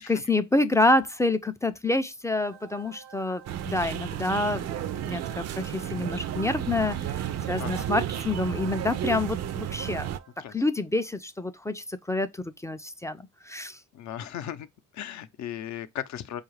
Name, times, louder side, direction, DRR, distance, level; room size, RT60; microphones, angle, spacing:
voice 1, 0.0-4.7 5.0-10.1 10.5-12.3 12.6-13.2 13.4-13.8, left 2 dB, 10° left, 0.3 m, -27 dB
sound 1, 2.4-10.6, right 8 dB, 90° right, 0.8 m, -49 dB
sound 2, 3.5-10.2, right 11 dB, 60° right, 0.5 m, -32 dB
voice 2, 13.9-14.7 14.9-16.4, left 10 dB, 65° left, 0.6 m, -37 dB
4.6 x 2.4 x 3.1 m
cardioid pair, 90°, 30 cm